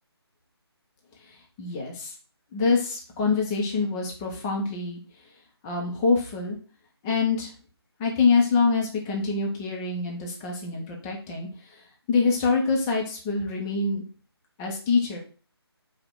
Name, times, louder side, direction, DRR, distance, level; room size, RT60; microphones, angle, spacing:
voice 1, 1.6-2.1 2.5-5.0 5.6-6.6 7.0-7.5 8.0-11.5 12.1-14.0 14.6-15.2, left 4 dB, 10° left, 0 dB, 0.4 m, -25 dB
5.0 x 2.1 x 4.5 m, 0.37 s
figure-of-eight pair, 160°, 14 cm